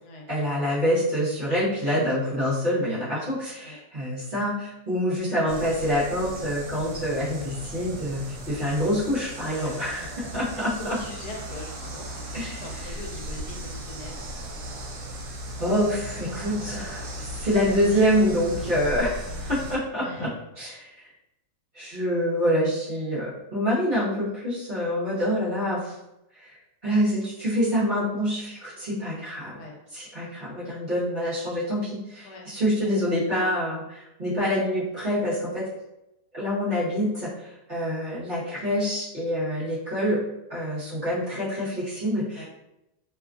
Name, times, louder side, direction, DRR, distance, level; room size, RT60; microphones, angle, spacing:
voice 1, 0.3-10.1 10.3-11.0 12.3-12.6 15.6-20.3 20.6-20.9 21.7-25.9 26.4-26.5 26.8-29.6 29.9-35.6 36.3-40.2 40.5-42.4, equal, 40° right, -11 dB, 0.9 m, -26 dB
sound 1, 5.5-19.8, right 1 dB, 80° right, 1.1 m, -37 dB
voice 2, 9.5-9.9 10.8-14.3 20.0-20.3 29.5-29.8 32.2-32.4 42.3-42.4, left 1 dB, 75° left, -1 dB, 1.1 m, -41 dB
2.9 x 2.3 x 2.4 m, 0.90 s
omnidirectional pair, 1.7 m